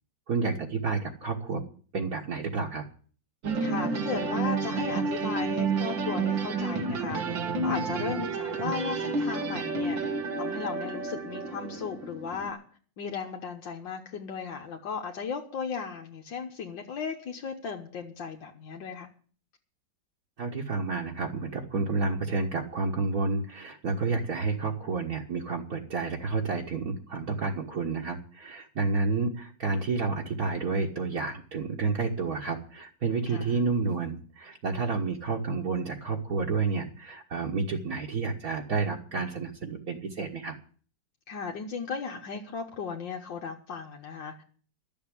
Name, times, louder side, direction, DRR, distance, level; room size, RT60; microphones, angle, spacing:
voice 1, 0.3-1.6 1.9-2.8 20.4-40.5, right 4 dB, 55° right, -1 dB, 1.8 m, -30 dB
sound 1, 3.4-12.5, right 4 dB, 90° right, 2.2 m, -30 dB
voice 2, 3.6-10.0 10.4-12.6 13.0-19.1 33.3-33.5 41.3-44.4, left 5 dB, 75° left, 2 dB, 1.9 m, -36 dB
12.0 x 7.2 x 9.9 m, 0.43 s
omnidirectional pair, 2.0 m